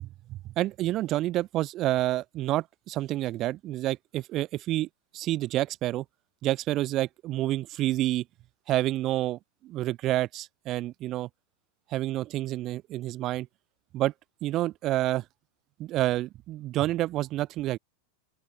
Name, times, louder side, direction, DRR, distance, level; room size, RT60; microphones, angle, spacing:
voice 1, 0.3-4.9 5.1-6.0 6.4-8.2 8.7-11.3 11.9-13.5 13.9-14.1 14.4-15.2 15.8-17.8, right 15 dB, 35° right, 4.0 m, -28 dB
open air
figure-of-eight pair, 90°, 0 cm